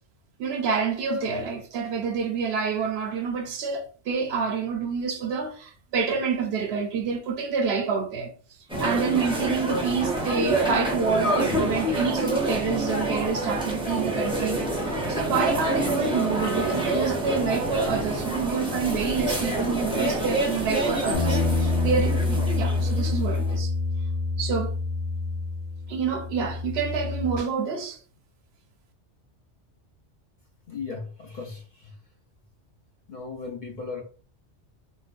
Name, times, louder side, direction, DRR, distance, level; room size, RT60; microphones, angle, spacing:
voice 1, 0.4-8.3 8.8-14.6 14.8-23.7 24.4-24.7 25.9-28.0, right 5 dB, 65° right, 0.7 m, -28 dB
sound 1, 8.7-23.6, right 1 dB, 5° right, 0.5 m, -27 dB
sound 2, 21.1-27.4, left 3 dB, 90° left, 1.3 m, -27 dB
voice 2, 30.7-31.9 33.1-34.0, left 4 dB, 55° left, 0.5 m, -36 dB
3.9 x 2.3 x 2.4 m
omnidirectional pair, 1.2 m